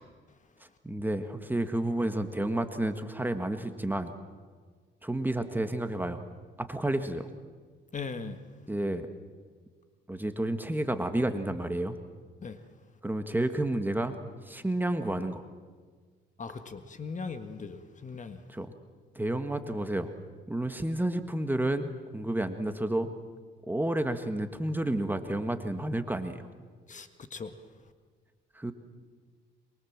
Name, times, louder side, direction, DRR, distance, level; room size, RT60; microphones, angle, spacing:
voice 1, 0.6-4.2 5.0-6.2 6.6-7.3 8.7-9.1 10.1-12.0 13.0-15.4 18.5-18.7 19.1-20.1 20.5-23.1 23.7-26.5 28.5-28.7, right 1 dB, 10° right, 8 dB, 1.6 m, -31 dB
voice 2, 7.9-8.4 12.4-12.6 16.4-18.4 26.9-27.5, left 4 dB, 40° left, 9 dB, 1.7 m, -39 dB
23.5 x 23.0 x 7.5 m, 1.6 s
cardioid pair, 90°, 20 cm